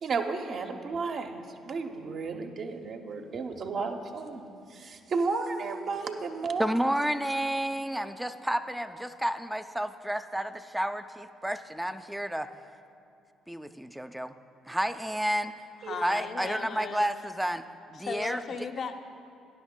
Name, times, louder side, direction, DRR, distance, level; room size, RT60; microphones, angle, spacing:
voice 1, 0.0-4.4 4.7-6.7 14.7-14.8 15.8-16.0, right 4 dB, 55° right, 4 dB, 0.7 m, -33 dB
voice 2, 6.6-12.5 13.5-14.3 14.7-15.5 16.0-17.6 17.9-18.4, right 1 dB, 5° right, 10 dB, 0.4 m, -31 dB
voice 3, 15.8-17.0 17.9-18.9, left 5 dB, 55° left, 5 dB, 0.6 m, -36 dB
15.5 x 9.8 x 2.2 m, 2.6 s
hypercardioid pair, 50°, 0 cm